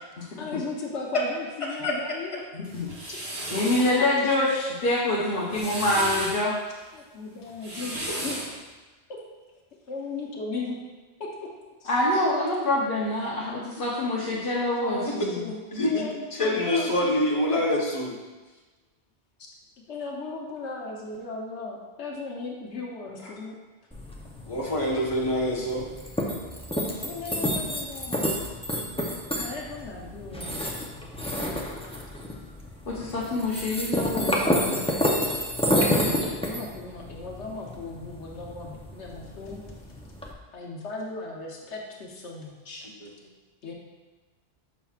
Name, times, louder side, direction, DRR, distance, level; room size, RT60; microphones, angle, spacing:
voice 1, 0.2-2.4 6.9-8.0 8.2-8.4 9.9-10.8 11.2-11.3 11.8-11.9 14.2-14.4 14.8-17.6 19.9-23.6 27.0-28.3 29.3-30.5 35.8-39.6 40.5-42.9 43.6-43.7, left 3 dB, 80° left, -1 dB, 1.2 m, -37 dB
voice 2, 1.6-2.0 8.1-8.2 15.1-15.3 15.7-16.0 16.3-18.1 23.2-23.3 24.5-25.8 43.0-43.1, left 1 dB, 30° left, -4 dB, 1.1 m, -26 dB
voice 3, 2.5-2.9 3.5-6.6 11.8-15.5 32.9-34.8, left 1 dB, 55° left, -6 dB, 1.0 m, -26 dB
sound 1, 2.6-3.9 5.3-6.4 7.5-8.6, right 1 dB, 65° right, 1.8 m, -34 dB
sound 2, 23.9-40.3, equal, 10° left, 0.4 m, -30 dB
7.3 x 5.7 x 2.4 m, 1.2 s
omnidirectional pair, 1.1 m